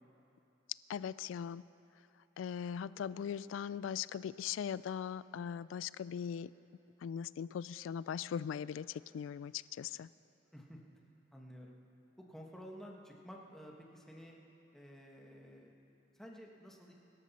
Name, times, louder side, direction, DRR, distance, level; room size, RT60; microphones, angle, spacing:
voice 1, 0.9-1.6 2.4-6.5 7.0-10.1, left 8 dB, 85° left, 18 dB, 0.3 m, -40 dB
voice 2, 11.3-11.8 12.2-14.4 14.7-15.8 16.1-16.9, equal, ahead, -2 dB, 1.4 m, -52 dB
23.0 x 12.5 x 4.2 m, 2.9 s
head